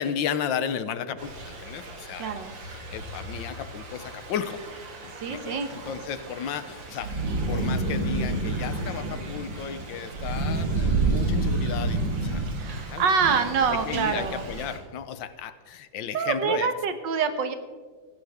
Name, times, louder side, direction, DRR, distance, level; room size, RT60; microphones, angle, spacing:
voice 1, 0.0-2.3 2.9-4.6 5.0-12.4 12.8-13.4 13.7-16.7, left 8 dB, 85° left, 12 dB, 1.5 m, -34 dB
Thunder / Rain, 1.2-14.8, right 2 dB, 90° right, 2.6 m, -30 dB
voice 2, 2.2-2.5 5.2-5.7 12.6-14.4 16.0-17.5, right 6 dB, 75° right, 9 dB, 1.8 m, -26 dB
16.5 x 15.5 x 3.6 m, 1.5 s
omnidirectional pair, 2.0 m